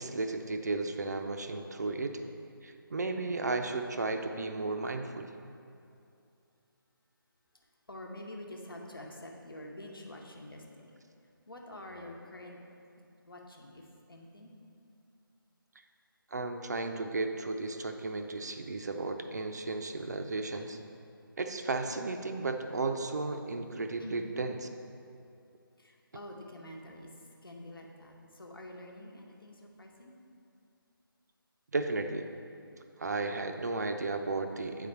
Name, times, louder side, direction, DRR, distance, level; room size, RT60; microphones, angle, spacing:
voice 1, 0.0-2.2 2.6-5.3 16.3-20.8 21.4-24.6 31.7-32.3 33.0-34.9, right 3 dB, 50° right, 6 dB, 0.4 m, -34 dB
voice 2, 7.9-10.6 11.5-12.7 13.3-14.5 24.0-24.3 25.8-27.1 27.4-30.2, left 1 dB, 75° left, 0 dB, 1.1 m, -47 dB
8.4 x 4.1 x 4.3 m, 2.6 s
figure-of-eight pair, 155°, 12 cm